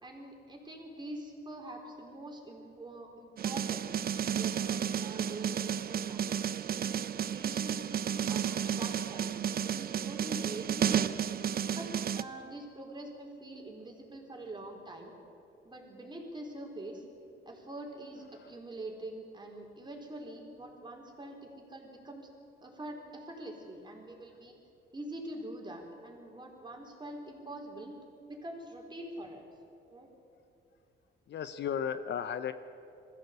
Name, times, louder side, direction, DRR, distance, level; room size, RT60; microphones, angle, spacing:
voice 1, 0.0-3.9 4.4-6.3 7.3-8.0 8.3-11.2 11.7-15.1 15.6-17.0 17.5-22.3 22.6-24.5 24.9-28.0 28.3-29.5 29.9-30.1, right 1 dB, 20° right, 1 dB, 4.3 m, -44 dB
sound 1, 3.4-12.2, right 8 dB, 50° right, 0.7 m, -32 dB
voice 2, 31.3-32.5, left 8 dB, 60° left, 11 dB, 0.9 m, -34 dB
21.0 x 15.0 x 8.3 m, 2.6 s
cardioid pair, 90°, 20 cm